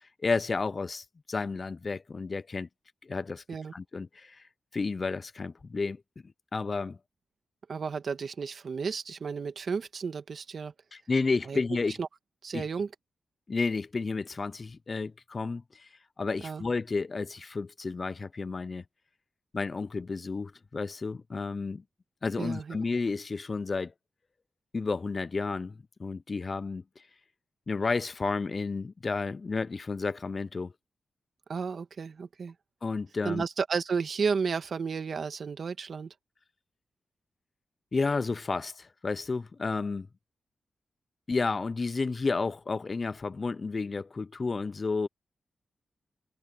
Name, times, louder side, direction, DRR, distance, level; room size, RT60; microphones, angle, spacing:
voice 1, 0.2-2.7 3.0-3.4 3.7-4.4 4.7-6.0 6.5-7.0 10.9-12.0 12.5-12.7 13.5-15.9 16.2-18.8 19.5-21.8 22.2-23.9 24.7-26.8 27.7-30.7 32.8-33.4 37.9-40.1 41.3-45.1, left 4 dB, 45° left, 0.4 m, -31 dB
voice 2, 7.7-10.7 11.5-11.6 12.0-12.1 12.4-12.9 16.4-16.6 22.4-22.8 31.5-32.5 33.2-36.1, right 5 dB, 65° right, 1.7 m, -32 dB
cardioid pair, 80°, 0 cm